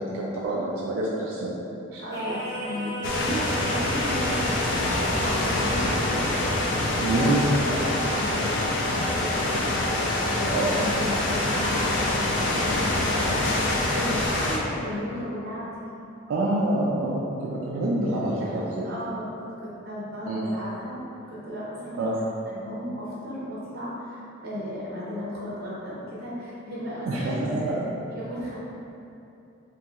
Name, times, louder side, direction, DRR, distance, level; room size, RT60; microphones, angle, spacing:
voice 1, 0.0-1.5 1.9-2.0 7.0-7.5 10.5-10.7 16.3-18.9 20.2-20.4 22.0-22.2 27.1-27.9, right 1 dB, 85° right, -5 dB, 0.3 m, -26 dB
voice 2, 2.0-6.2 7.0-15.9 18.2-18.5 18.8-19.3 19.6-20.9 21.3-22.1 22.5-28.6, equal, 50° right, -8 dB, 0.8 m, -35 dB
Singing, 2.1-14.2, right 1 dB, 15° right, 0.4 m, -36 dB
sound 1, 3.0-14.6, left 2 dB, 65° left, 0.4 m, -25 dB
2.9 x 2.6 x 2.3 m, 2.8 s
head